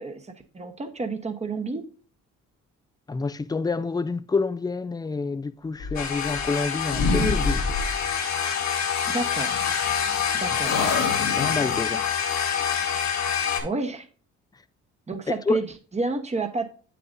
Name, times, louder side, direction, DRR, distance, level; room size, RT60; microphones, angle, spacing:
voice 1, 0.0-1.8 9.1-9.6 10.3-10.8 13.6-14.1 15.1-16.7, right 3 dB, 20° right, 1.1 m, -30 dB
voice 2, 3.1-7.7 11.2-12.1 15.5-15.6, left 4 dB, 15° left, 0.4 m, -28 dB
sound 1, 5.8-6.6 6.9-8.1 9.4-10.3 10.6-11.9, left 3 dB, 90° left, 1.8 m, -28 dB
sound 2, 6.0-13.6, left 8 dB, 65° left, 1.6 m, -26 dB
8.6 x 6.9 x 2.6 m
cardioid pair, 90°, 30 cm